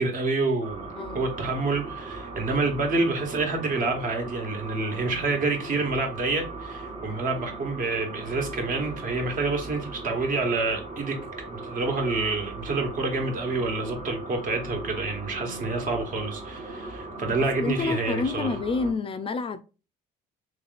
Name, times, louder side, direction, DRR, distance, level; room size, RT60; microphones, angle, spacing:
voice 1, 0.0-0.9 1.1-11.2 11.5-18.5, right 3 dB, 55° right, 1.3 m, -28 dB
sound 1, 0.6-18.9, right 3 dB, 40° right, 1.0 m, -38 dB
voice 2, 1.0-1.3 17.3-19.6, left 4 dB, 35° left, 0.3 m, -29 dB
3.2 x 2.9 x 4.0 m
cardioid pair, 110°, 17 cm